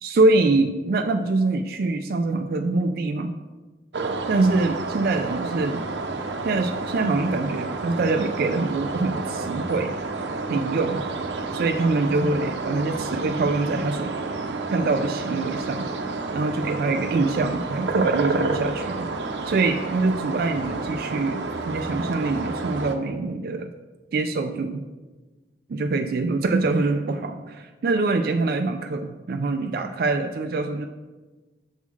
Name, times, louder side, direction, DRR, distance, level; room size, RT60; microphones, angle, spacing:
voice 1, 0.0-3.3 4.3-5.8 6.4-9.9 10.5-11.0 11.5-14.2 14.7-15.9 16.3-19.1 19.5-23.7 24.1-24.9 25.7-30.9, right 3 dB, 60° right, 6 dB, 0.4 m, -24 dB
sound 1, 3.9-23.0, right 3 dB, 90° right, 0.7 m, -30 dB
7.1 x 3.7 x 6.1 m, 1.2 s
head